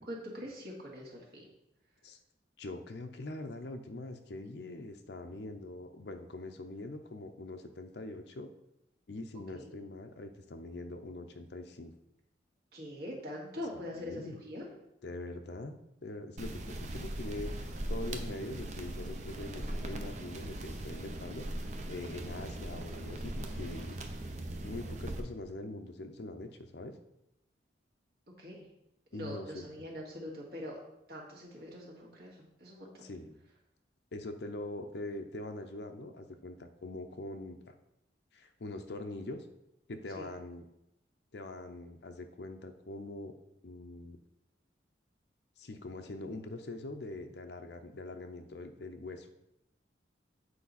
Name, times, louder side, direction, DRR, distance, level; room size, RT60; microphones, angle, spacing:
voice 1, 0.0-1.5 9.5-9.7 12.7-14.7 28.4-28.7 29.1-30.8 31.1-33.1 40.2-40.3, left 1 dB, 55° right, -3 dB, 2.0 m, -43 dB
voice 2, 2.6-8.5 9.1-11.9 13.7-14.4 15.0-21.5 21.9-24.0 24.6-26.9 29.1-29.7 33.0-33.4 34.1-37.7 38.3-39.5 39.9-40.6 41.3-43.4 43.6-44.2 45.6-49.3, left 2 dB, 65° left, 6 dB, 0.6 m, -43 dB
sound 1, 16.4-25.2, right 1 dB, 40° right, 0.7 m, -39 dB
8.5 x 4.7 x 4.1 m, 0.85 s
head